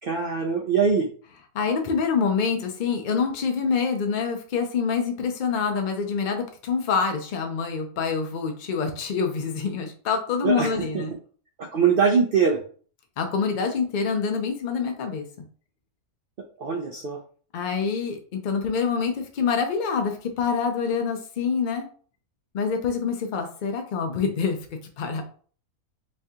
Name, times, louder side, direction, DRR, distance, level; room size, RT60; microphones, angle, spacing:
voice 1, 0.0-1.1 10.4-11.0 11.6-12.6 16.6-17.2, right 6 dB, 80° right, 2 dB, 0.5 m, -22 dB
voice 2, 1.5-11.1 13.2-15.2 17.5-21.9 22.5-24.6 25.0-25.3, left 5 dB, 80° left, 4 dB, 0.4 m, -26 dB
3.2 x 2.7 x 3.5 m, 0.43 s
omnidirectional pair, 1.6 m